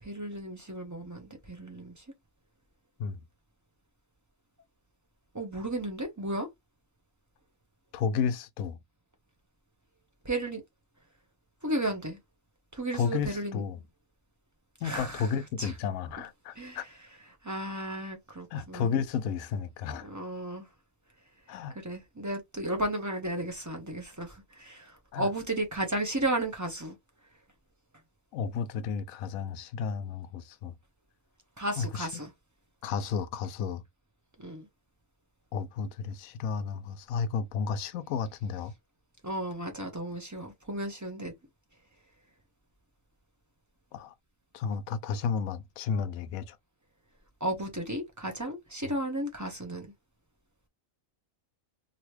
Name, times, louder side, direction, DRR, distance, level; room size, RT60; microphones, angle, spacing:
voice 1, 0.0-2.0 5.3-6.5 10.2-10.6 11.6-12.2 12.7-13.6 14.8-15.3 15.6-15.7 16.5-16.9 17.4-18.9 20.0-20.7 21.8-27.0 31.6-32.3 34.4-34.7 39.2-41.3 47.4-49.9, right 1 dB, 15° right, 0.7 m, -34 dB
voice 2, 7.9-8.8 12.9-13.8 14.8-16.8 18.5-20.1 21.5-21.8 25.1-25.3 28.3-30.7 31.8-32.1 32.8-33.8 35.5-38.7 43.9-44.1 44.5-46.6, left 6 dB, 80° left, 1.0 m, -32 dB
3.0 x 2.7 x 3.1 m
omnidirectional pair, 1.5 m